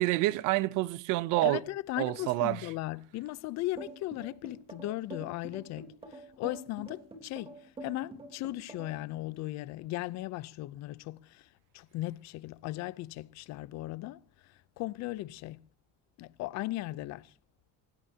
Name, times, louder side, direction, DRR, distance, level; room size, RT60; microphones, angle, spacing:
voice 1, 0.0-1.6 2.0-2.7, right 18 dB, 85° right, 0.8 m, -28 dB
voice 2, 1.4-7.6 7.8-11.5 11.7-14.2 14.8-15.6 16.2-17.3, left 17 dB, 60° left, 0.6 m, -37 dB
sound 1, 3.8-9.0, right 2 dB, 20° right, 3.4 m, -45 dB
27.5 x 16.5 x 2.8 m
cardioid pair, 165°, 31 cm